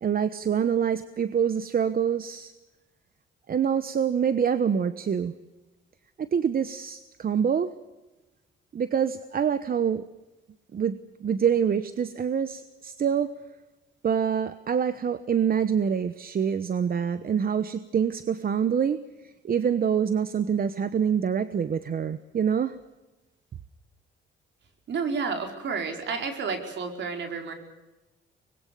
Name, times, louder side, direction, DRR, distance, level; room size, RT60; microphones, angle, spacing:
voice 1, 0.0-2.5 3.5-5.3 6.2-7.7 8.7-10.0 10.7-10.9 11.2-13.3 14.0-19.0 19.2-22.8, right 7 dB, 45° right, 13 dB, 1.1 m, -26 dB
voice 2, 24.9-27.5, right 5 dB, 65° right, 4 dB, 5.0 m, -30 dB
25.0 x 21.0 x 6.9 m, 1.1 s
cardioid pair, 90°, 20 cm